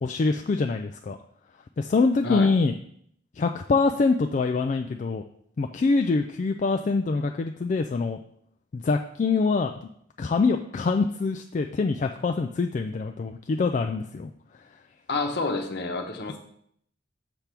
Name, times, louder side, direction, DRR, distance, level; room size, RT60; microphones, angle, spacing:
voice 1, 0.0-1.2 1.8-2.7 3.4-5.2 5.6-8.2 8.7-9.7 10.2-14.3, left 4 dB, 40° left, 5 dB, 0.3 m, -24 dB
voice 2, 15.1-16.4, left 3 dB, 60° left, 4 dB, 0.9 m, -29 dB
7.0 x 3.4 x 5.8 m, 0.67 s
head